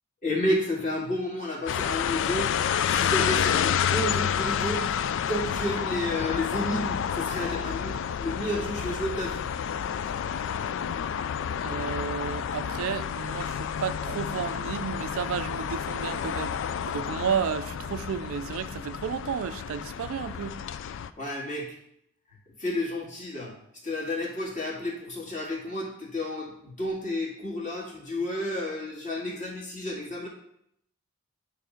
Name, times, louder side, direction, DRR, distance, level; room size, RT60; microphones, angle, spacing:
voice 1, 0.2-2.5 2.9-4.8 5.3-9.5 21.2-21.8 22.6-23.6 23.8-30.3, left 1 dB, 35° left, 1.9 m, -31 dB
sound 1, 1.7-21.1, left 8 dB, 55° left, 0.3 m, -30 dB
voice 2, 11.6-20.7, right 7 dB, 60° right, 0.3 m, -32 dB
9.3 x 3.2 x 5.1 m
head